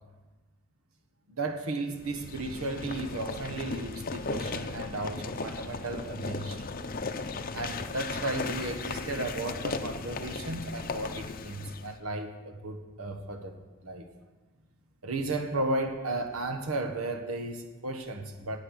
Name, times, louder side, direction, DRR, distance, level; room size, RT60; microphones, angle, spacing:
voice 1, 1.3-6.6 7.5-13.6 13.8-14.0 15.0-18.6, right 2 dB, 85° right, 5 dB, 1.4 m, -34 dB
sound 1, 2.0-11.9, left 3 dB, 45° left, 0.6 m, -36 dB
12.0 x 9.1 x 6.5 m, 1.3 s
head